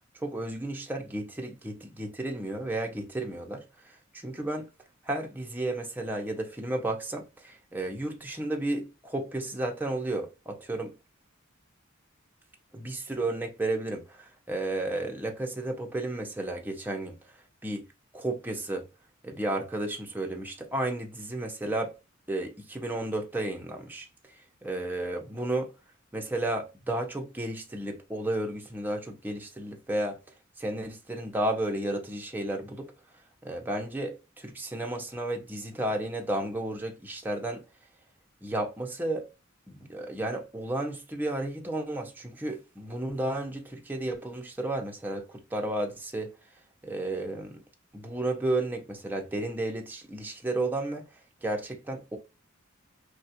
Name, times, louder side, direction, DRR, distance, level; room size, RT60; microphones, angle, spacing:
voice 1, 0.1-4.7 5.0-10.9 12.7-17.2 17.6-17.9 18.1-18.9 19.2-22.0 22.3-24.1 24.6-25.7 26.1-30.2 30.6-32.9 33.4-37.6 38.4-39.3 39.7-46.3 46.8-47.6 47.9-51.1 51.4-52.2, right 1 dB, 10° right, 0.6 m, -33 dB
3.3 x 2.4 x 2.7 m
head